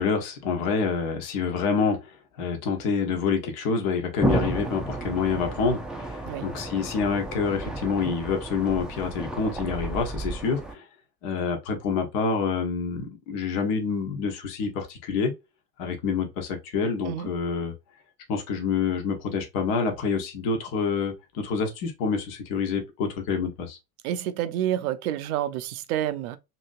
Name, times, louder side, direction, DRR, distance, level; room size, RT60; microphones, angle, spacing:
voice 1, 0.0-10.8 11.2-15.3 15.8-17.7 18.3-23.8, left 5 dB, 60° left, 1.1 m, -27 dB
sound 1, 4.2-10.7, right 2 dB, ahead, 0.4 m, -32 dB
voice 2, 24.0-26.4, right 11 dB, 70° right, 0.6 m, -29 dB
2.9 x 2.7 x 2.5 m
hypercardioid pair, 70°, 45 cm